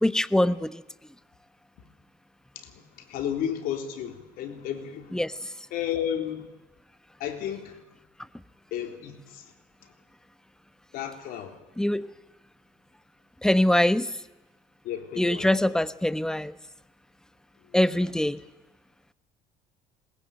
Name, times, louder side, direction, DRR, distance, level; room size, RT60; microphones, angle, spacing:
voice 1, 0.0-0.8 5.1-5.3 11.8-12.1 13.4-14.1 15.2-16.5 17.7-18.4, left 1 dB, 5° left, 14 dB, 1.0 m, -23 dB
voice 2, 3.1-5.2 5.7-6.5 7.2-7.8 8.7-9.5 10.9-11.6 14.8-15.5, left 9 dB, 70° left, 5 dB, 3.7 m, -32 dB
21.0 x 20.0 x 9.1 m, 1.0 s
supercardioid pair, 85°, 15 cm